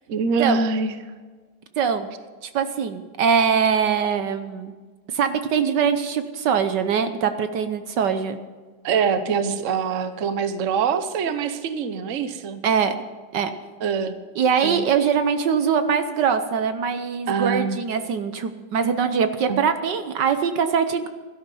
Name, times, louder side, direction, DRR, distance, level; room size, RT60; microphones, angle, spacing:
voice 1, 0.1-1.0 8.8-12.6 13.8-14.2 14.6-14.8 17.3-17.8 19.5-19.6, right 6 dB, 50° right, 10 dB, 1.2 m, -24 dB
voice 2, 1.8-2.1 2.4-4.7 5.1-8.4 12.6-12.9 13.3-13.5 14.4-21.1, right 7 dB, 70° right, 9 dB, 1.4 m, -22 dB
17.0 x 12.5 x 5.5 m, 1.5 s
omnidirectional pair, 2.0 m